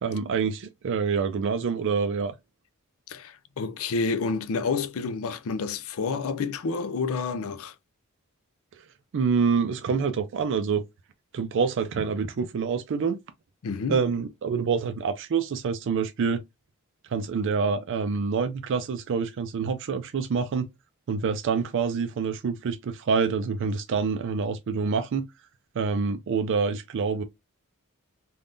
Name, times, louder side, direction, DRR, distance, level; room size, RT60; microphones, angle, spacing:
voice 1, 0.0-2.3 9.1-10.8 11.3-13.2 13.9-16.4 17.1-20.7 21.1-25.3 25.8-27.2, right 5 dB, 60° right, 0.4 m, -26 dB
voice 2, 3.1-7.7 13.6-14.0, left 4 dB, 70° left, 0.4 m, -29 dB
3.5 x 2.3 x 2.5 m
head